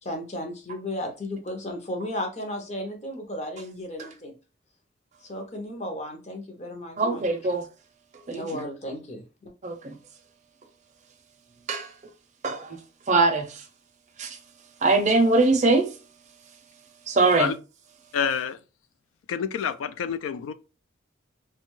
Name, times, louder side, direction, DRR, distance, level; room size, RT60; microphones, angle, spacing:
voice 1, 0.0-4.3 5.2-7.2 8.3-9.5, left 1 dB, 35° left, 0.6 m, -34 dB
voice 2, 7.0-7.6 8.3-8.6 9.6-9.9 11.7-11.9 12.4-12.8 13.1-13.6 14.2-14.4 14.8-15.9 17.1-17.5, right 3 dB, 35° right, 0.5 m, -22 dB
voice 3, 18.1-18.6 19.3-20.5, left 7 dB, 85° left, 0.3 m, -28 dB
2.6 x 2.2 x 3.0 m
head